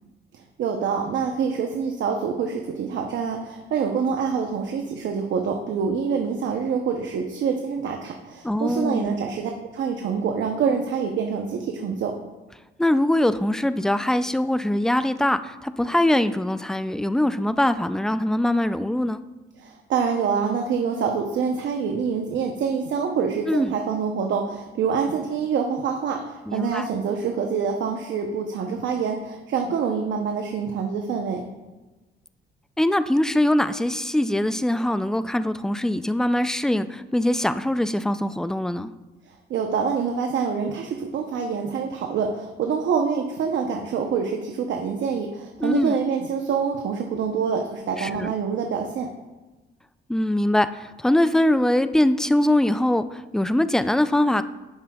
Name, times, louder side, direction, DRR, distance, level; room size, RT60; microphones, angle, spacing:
voice 1, 0.6-12.2 19.6-31.4 39.3-49.1, right 6 dB, 70° right, 3 dB, 0.8 m, -26 dB
voice 2, 8.4-9.2 12.8-19.2 23.5-23.8 26.5-26.9 32.8-38.9 45.6-45.9 48.0-48.3 50.1-54.4, left 1 dB, 5° left, 12 dB, 0.3 m, -22 dB
11.0 x 7.3 x 2.3 m, 1.1 s
cardioid pair, 90°, 20 cm